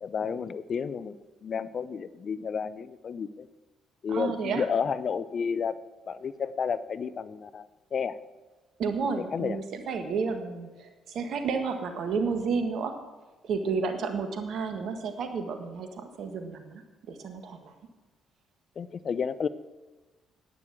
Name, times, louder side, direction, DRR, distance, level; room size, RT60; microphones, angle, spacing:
voice 1, 0.0-3.5 4.0-5.8 6.1-7.7 7.9-8.2 9.3-9.6 18.8-19.5, left 6 dB, 50° left, 15 dB, 0.6 m, -31 dB
voice 2, 4.1-4.7 8.8-12.9 13.4-16.8 17.1-17.7, right 5 dB, 60° right, 6 dB, 1.7 m, -31 dB
11.0 x 9.8 x 7.4 m, 1.2 s
hypercardioid pair, 45°, 0 cm